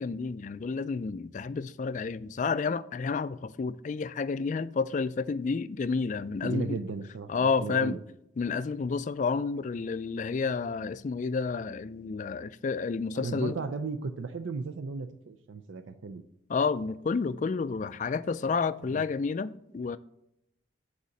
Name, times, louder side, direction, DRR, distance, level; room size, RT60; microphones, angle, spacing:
voice 1, 0.0-6.8 7.3-8.0 8.4-13.5 16.5-20.0, left 4 dB, 40° left, 0.3 m, -30 dB
voice 2, 6.4-8.0 13.1-16.2 18.8-19.0, right 4 dB, 85° right, 0.5 m, -36 dB
8.2 x 4.1 x 6.5 m
head